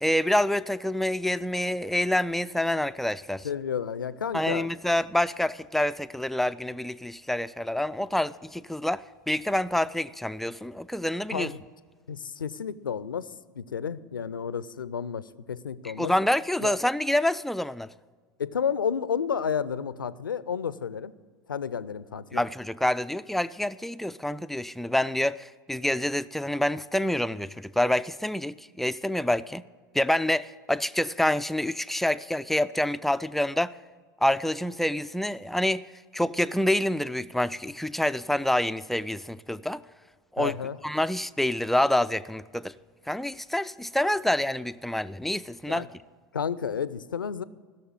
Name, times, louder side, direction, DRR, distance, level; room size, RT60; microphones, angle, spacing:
voice 1, 0.0-3.5 4.3-11.5 15.8-17.9 22.3-29.6 29.9-33.8 34.2-35.8 36.1-39.8 40.3-40.5 40.8-42.7 43.1-45.9, left 1 dB, ahead, 0.3 m, -27 dB
voice 2, 3.4-4.7 11.3-11.6 12.1-13.3 13.6-16.1 16.6-16.8 18.4-21.1 21.5-22.5 40.4-40.8 45.7-45.9 46.3-47.4, left 7 dB, 80° left, 0.5 m, -31 dB
16.0 x 6.8 x 9.5 m
figure-of-eight pair, 80°, 11 cm